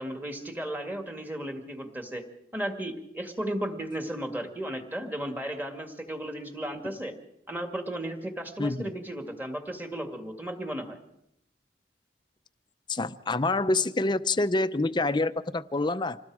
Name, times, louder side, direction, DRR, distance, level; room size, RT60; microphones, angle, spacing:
voice 1, 0.0-2.2 2.5-7.1 7.5-11.0, right 1 dB, 10° right, 2.2 m, -35 dB
voice 2, 8.6-8.9 12.9-16.2, left 2 dB, 25° left, 0.7 m, -27 dB
27.0 x 20.0 x 4.9 m
head